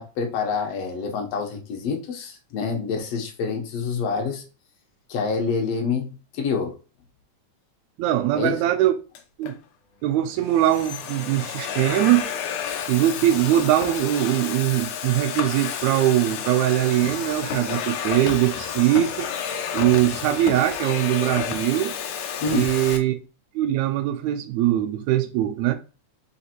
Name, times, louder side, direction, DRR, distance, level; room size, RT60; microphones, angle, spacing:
voice 1, 0.0-4.4 5.1-6.8 8.4-8.6 22.4-22.7, left 5 dB, 65° left, 1.9 m, -27 dB
voice 2, 8.0-8.9 9.4-9.6 10.0-12.3 12.9-19.3 19.7-22.0 22.5-23.2 23.6-25.8, right 13 dB, 80° right, 1.8 m, -21 dB
Domestic sounds home sounds, 9.1-9.5 10.3-23.0, left 8 dB, 85° left, 2.1 m, -31 dB
5.0 x 3.2 x 2.9 m
omnidirectional pair, 3.4 m